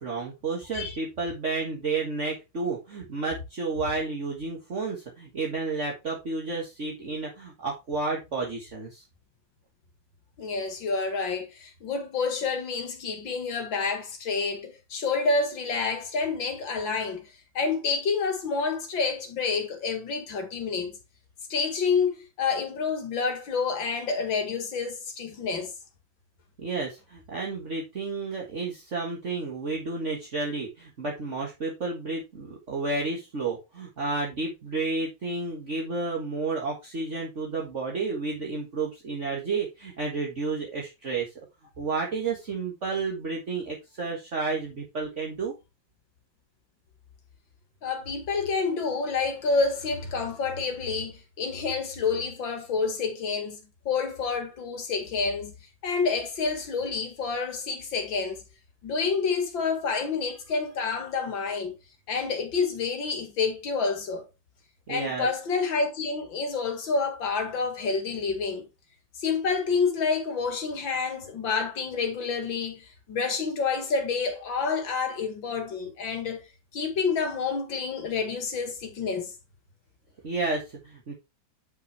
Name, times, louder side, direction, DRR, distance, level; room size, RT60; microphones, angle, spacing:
voice 1, 0.0-9.0 26.6-41.3 41.8-45.5 64.9-65.3 80.2-81.1, right 3 dB, 40° right, 1.9 m, -31 dB
voice 2, 10.4-17.2 17.5-20.9 21.5-25.7 47.8-53.6 53.9-55.5 55.8-58.4 58.8-61.7 62.1-64.3 64.9-68.6 69.2-76.4 76.7-79.3, left 4 dB, 85° left, 2.7 m, -28 dB
9.5 x 5.9 x 3.4 m
omnidirectional pair, 2.0 m